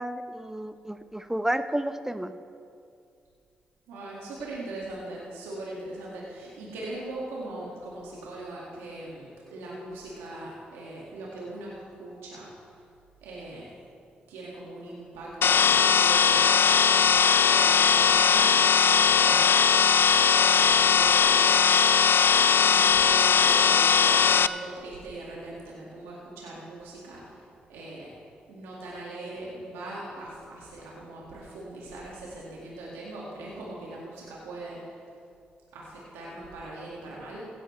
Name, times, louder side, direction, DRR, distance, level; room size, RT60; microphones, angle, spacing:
voice 1, 0.0-2.3, right 1 dB, 10° right, 10 dB, 0.8 m, -31 dB
voice 2, 3.9-12.5 13.2-13.8 14.3-16.6 17.0-18.6 19.0-19.6 20.4-21.4 22.7-27.4 27.7-35.0 35.7-37.5, right 2 dB, 85° right, -5 dB, 2.1 m, -40 dB
sound 1, 15.4-24.5, left 7 dB, 55° left, 0.4 m, -20 dB
16.5 x 11.5 x 3.3 m, 2.4 s
hypercardioid pair, 45°, 4 cm